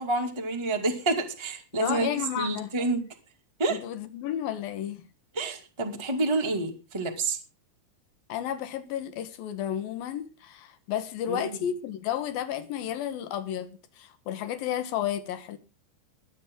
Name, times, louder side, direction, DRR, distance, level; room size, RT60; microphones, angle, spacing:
voice 1, 0.0-2.1 2.3-3.0 3.6-3.8 5.3-7.4 11.3-11.5, right 2 dB, 15° right, 0.9 m, -28 dB
voice 2, 1.7-2.7 3.7-5.0 8.3-15.6, left 10 dB, 65° left, 2.8 m, -32 dB
22.5 x 8.7 x 3.8 m
omnidirectional pair, 5.0 m